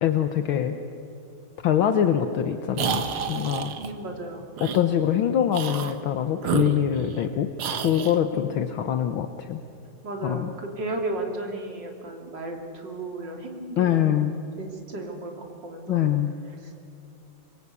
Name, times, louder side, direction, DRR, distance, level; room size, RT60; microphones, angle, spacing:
voice 1, 0.0-0.8 1.6-3.7 4.6-9.6 10.2-10.5 13.8-14.4 15.9-16.3, left 10 dB, 70° left, 7 dB, 1.8 m, -24 dB
sound 1, 2.7-3.9 4.6-4.8 5.5-6.0 6.4-7.3 7.6-8.2, right 7 dB, 75° right, 2.2 m, -30 dB
voice 2, 3.8-4.4 8.3-8.9 10.0-14.2 14.6-16.1 16.6-16.7, right 2 dB, 55° right, 1 dB, 3.7 m, -35 dB
26.5 x 23.5 x 8.3 m, 2.6 s
omnidirectional pair, 2.3 m